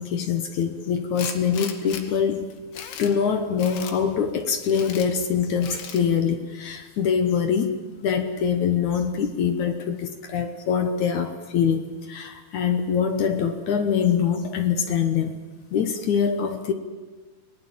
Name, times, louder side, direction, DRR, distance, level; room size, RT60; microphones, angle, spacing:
voice 1, 0.0-2.5 3.0-15.3 15.7-16.7, left 7 dB, 65° left, 7 dB, 2.1 m, -24 dB
Tools, 1.2-2.0 2.5-3.1 3.6-4.0 4.6-5.1 5.6-6.0, left 8 dB, 90° left, 3.8 m, -37 dB
29.0 x 19.5 x 7.5 m, 1.4 s
omnidirectional pair, 4.4 m